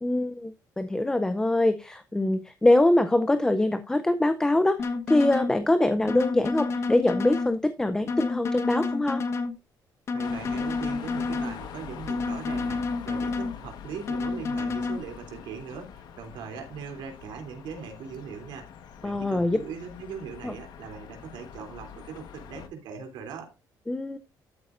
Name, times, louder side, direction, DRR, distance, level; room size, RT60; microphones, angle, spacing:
voice 1, 0.0-9.2 19.0-19.6 20.4-20.5 23.9-24.2, left 1 dB, 10° left, 0.5 m, -24 dB
sound 1, 4.8-5.5 6.1-7.5 8.1-9.5 10.1-11.5 12.1-13.5 14.1-15.0, left 3 dB, 40° left, 1.3 m, -29 dB
voice 2, 10.1-18.7 19.0-23.5, right 6 dB, 85° right, 3.2 m, -40 dB
sound 2, 10.2-22.7, left 8 dB, 65° left, 1.3 m, -44 dB
13.0 x 8.4 x 2.6 m
cardioid pair, 160°, 8 cm